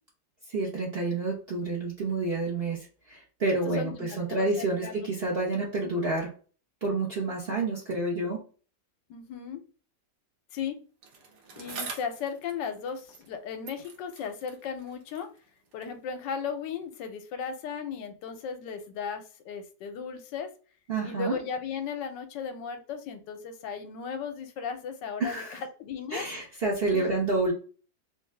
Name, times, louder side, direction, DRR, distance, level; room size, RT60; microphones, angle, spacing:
voice 1, 0.5-6.3 6.8-8.4 20.9-21.4 25.2-25.6 26.1-27.5, right 3 dB, 45° right, -3 dB, 0.8 m, -29 dB
voice 2, 3.6-5.1 9.1-9.6 10.5-10.8 11.6-15.3 15.7-20.5 21.0-26.3 26.9-27.1, left 6 dB, 80° left, 7 dB, 1.3 m, -36 dB
Bicycle, 11.0-13.4 13.6-16.0 16.8-16.9, right 4 dB, 70° right, 1.4 m, -45 dB
3.3 x 2.5 x 3.2 m, 0.38 s
omnidirectional pair, 1.9 m